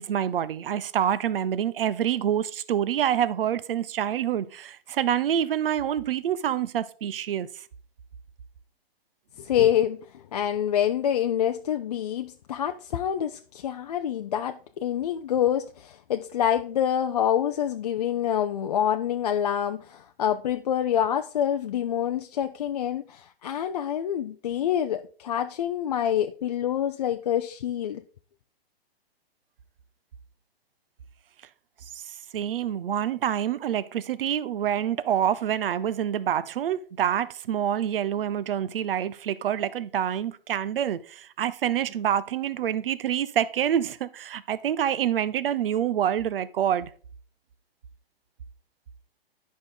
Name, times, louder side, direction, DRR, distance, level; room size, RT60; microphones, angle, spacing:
voice 1, 0.0-7.7 31.9-46.9, right 10 dB, 65° right, 0.8 m, -27 dB
voice 2, 9.4-28.0, left 10 dB, 40° left, 0.4 m, -26 dB
11.0 x 5.2 x 3.9 m
hypercardioid pair, 165°, 31 cm